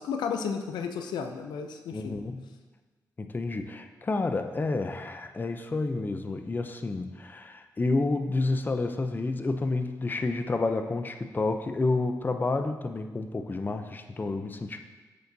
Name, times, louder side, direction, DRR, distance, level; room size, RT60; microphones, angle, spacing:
voice 1, 0.0-2.2, left 6 dB, 90° left, 6 dB, 0.5 m, -33 dB
voice 2, 1.9-2.5 3.2-14.8, left 3 dB, 25° left, 7 dB, 0.5 m, -30 dB
8.2 x 6.6 x 2.7 m, 1.3 s
cardioid pair, 80°, 7 cm